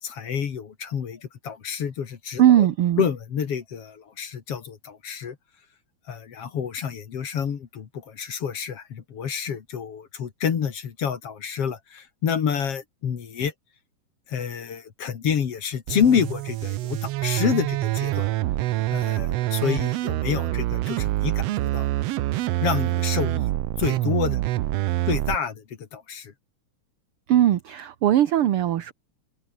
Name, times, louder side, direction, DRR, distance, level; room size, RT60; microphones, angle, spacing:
voice 1, 0.0-2.7 3.0-5.4 6.1-13.5 14.3-18.3 18.9-21.9 22.6-23.5 23.8-24.4 25.1-26.3, left 7 dB, 55° left, 2.8 m, -28 dB
voice 2, 2.4-3.0 27.3-28.9, right 11 dB, 60° right, 1.7 m, -19 dB
sound 1, 15.9-25.4, right 16 dB, 75° right, 1.5 m, -26 dB
omnidirectional pair, 3.4 m